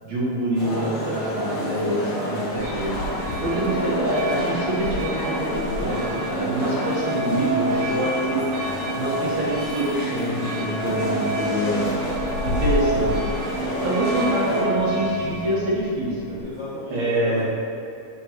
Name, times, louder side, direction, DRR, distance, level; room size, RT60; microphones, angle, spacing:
voice 1, 0.0-3.0 3.4-8.4 8.9-11.9 12.4-13.3 13.8-16.4 16.9-17.4, right 1 dB, 70° right, -6 dB, 2.4 m, -26 dB
sound 1, 0.5-14.6, left 1 dB, 40° left, 0.4 m, -30 dB
Meow, 2.5-16.4, left 2 dB, 90° left, 2.1 m, -35 dB
sound 2, 2.6-15.6, right 1 dB, 85° right, 2.6 m, -29 dB
voice 2, 13.5-15.0 16.2-17.4, left 1 dB, 55° left, -11 dB, 1.3 m, -36 dB
7.5 x 5.3 x 2.9 m, 2.7 s
omnidirectional pair, 3.4 m